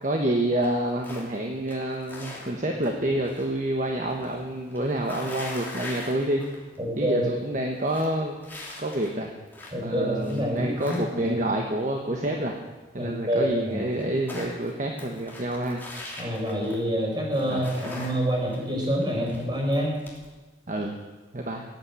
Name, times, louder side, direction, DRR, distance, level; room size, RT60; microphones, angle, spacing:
voice 1, 0.0-6.4 7.0-8.4 8.8-9.3 9.8-12.5 12.9-15.8 17.5-17.9 20.7-20.9 21.3-21.6, right 1 dB, 40° right, 1 dB, 1.3 m, -28 dB
sound 1, 0.6-1.4 1.7-3.5 3.8-6.8 7.1-7.2 7.6-9.8 10.2-11.5 13.0-13.1 13.3-13.4 13.7-17.0 17.3-20.3, left 2 dB, 10° left, 2.9 m, -41 dB
voice 2, 6.8-7.2 9.7-11.5 13.0-13.8 16.2-19.9, equal, 25° right, -1 dB, 4.6 m, -27 dB
17.0 x 8.8 x 8.4 m, 1.2 s
head